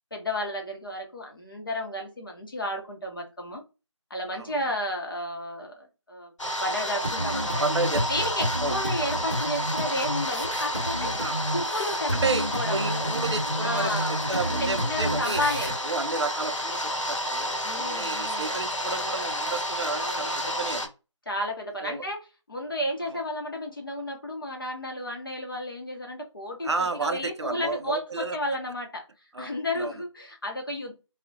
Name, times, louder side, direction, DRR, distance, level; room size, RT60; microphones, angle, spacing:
voice 1, 0.1-3.6 4.1-6.3 6.6-7.6 8.1-11.3 11.5-12.2 12.5-13.0 13.6-14.2 14.6-15.7 17.6-18.7 20.0-20.5 21.3-29.0 29.4-30.9, left 1 dB, 45° left, 0.7 m, -32 dB
sound 1, 6.4-20.9, equal, 75° left, 0.8 m, -30 dB
sound 2, 7.0-15.7, right 1 dB, 15° right, 0.7 m, -31 dB
voice 2, 7.6-8.3 8.6-8.8 11.2-11.4 12.2-13.9 14.3-15.4 15.8-20.9 21.8-22.0 26.6-28.4 29.3-29.9, right 3 dB, 60° right, 0.4 m, -31 dB
2.2 x 2.1 x 2.6 m
figure-of-eight pair, 170°, 16 cm